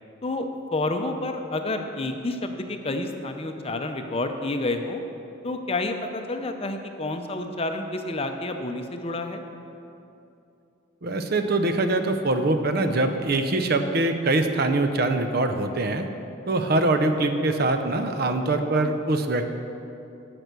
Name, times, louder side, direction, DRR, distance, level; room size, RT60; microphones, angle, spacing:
voice 1, 0.2-5.0 5.4-9.4, left 2 dB, 30° left, 6 dB, 0.6 m, -29 dB
voice 2, 11.0-16.1 16.5-19.5, right 2 dB, 50° right, 7 dB, 0.6 m, -23 dB
10.5 x 6.0 x 6.7 m, 2.8 s
head